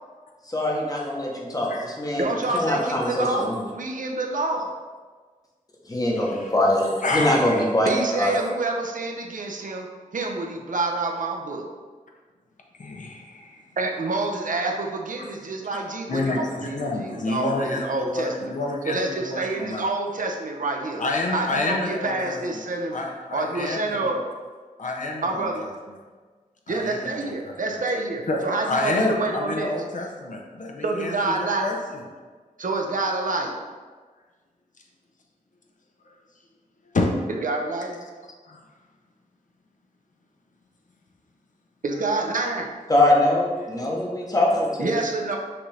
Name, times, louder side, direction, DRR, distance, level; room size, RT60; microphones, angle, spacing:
voice 1, 0.5-3.6 5.9-7.9 8.2-8.3 42.9-44.9, left 1 dB, 25° left, -2 dB, 0.9 m, -23 dB
voice 2, 2.2-4.7 7.8-9.9 10.1-11.7 13.8-18.3 18.9-21.0 21.3-22.9 23.3-24.2 25.2-25.7 26.7-29.7 30.8-31.7 32.6-33.6 37.4-38.0 41.8-42.7 44.8-45.4, right 3 dB, 65° right, 1 dB, 0.6 m, -27 dB
voice 3, 6.1-6.5 7.0-7.7 12.8-13.6 15.2-15.3 16.1-19.9 21.0-22.4 22.9-24.2 24.8-25.5 26.7-27.8 28.3-32.0 36.1-36.2 36.9-37.1 38.5-38.6, left 2 dB, 60° left, 0 dB, 0.6 m, -29 dB
5.8 x 2.6 x 3.2 m, 1.4 s
wide cardioid pair, 80°, 15 cm